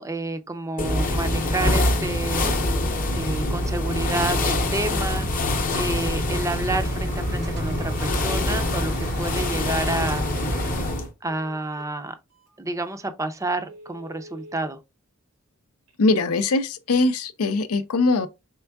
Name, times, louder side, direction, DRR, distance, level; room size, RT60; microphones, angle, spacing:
voice 1, 0.0-2.7 3.2-5.3 5.7-10.3 11.2-12.1 12.6-14.8, right 2 dB, 15° right, 0.5 m, -29 dB
sound 1, 0.8-11.1, left 1 dB, 40° left, 0.7 m, -25 dB
sound 2, 2.9-10.9, right 2 dB, 50° right, 0.7 m, -38 dB
Telephone, 10.8-11.9 12.5-12.6 13.0-13.1 13.5-14.7 15.9-16.5, right 1 dB, 85° right, 1.3 m, -46 dB
voice 2, 16.0-18.3, left 3 dB, 80° left, 0.5 m, -21 dB
4.5 x 3.4 x 2.3 m
head